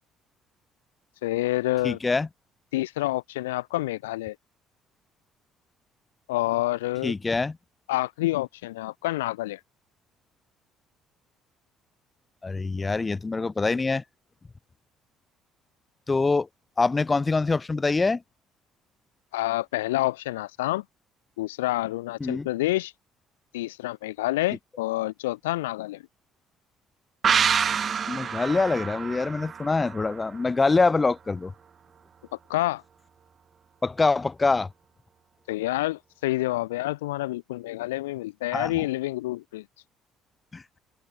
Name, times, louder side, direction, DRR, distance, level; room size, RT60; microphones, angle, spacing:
voice 1, 1.2-2.0 2.7-4.4 6.3-7.1 7.9-9.6 19.3-20.8 21.4-22.9 23.5-26.0 32.5-32.8 35.5-39.6, left 17 dB, 90° left, 0.9 m, -28 dB
voice 2, 1.8-2.3 7.0-7.6 12.4-14.0 16.1-16.5 16.8-18.2 22.2-22.5 28.1-31.5 33.8-34.7 38.5-38.8 40.5-40.6, left 3 dB, 25° left, 0.4 m, -24 dB
sound 1, 27.2-30.7 31.0-31.1, right 7 dB, 45° right, 0.4 m, -27 dB
open air
hypercardioid pair, 60°, 0 cm